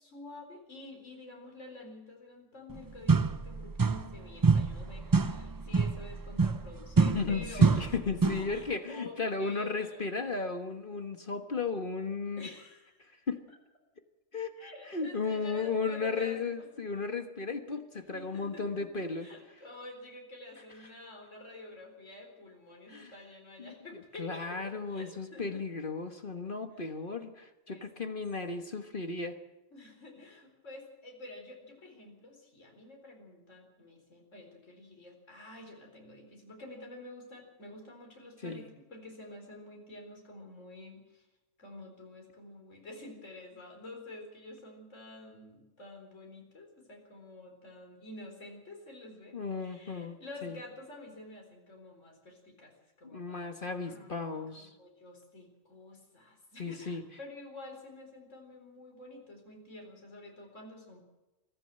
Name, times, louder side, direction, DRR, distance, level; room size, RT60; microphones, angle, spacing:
voice 1, 0.0-7.9 8.2-10.1 12.4-13.1 14.6-16.7 18.1-24.6 24.9-25.6 26.8-26.9 27.7-28.2 29.7-41.3 41.6-61.0, left 2 dB, 70° left, 1 dB, 4.6 m, -49 dB
golpe suave de pie en una escalon de metal, 2.7-2.8 3.1-4.2 4.4-8.6, right 4 dB, 30° right, 0.4 m, -27 dB
voice 2, 7.0-12.5 13.3-13.4 14.3-19.3 22.9-23.1 23.6-29.4 38.4-38.6 49.3-50.6 53.1-54.7 56.6-57.0, left 4 dB, 45° left, 7 dB, 1.5 m, -35 dB
24.0 x 14.5 x 7.6 m, 1.1 s
omnidirectional pair, 1.3 m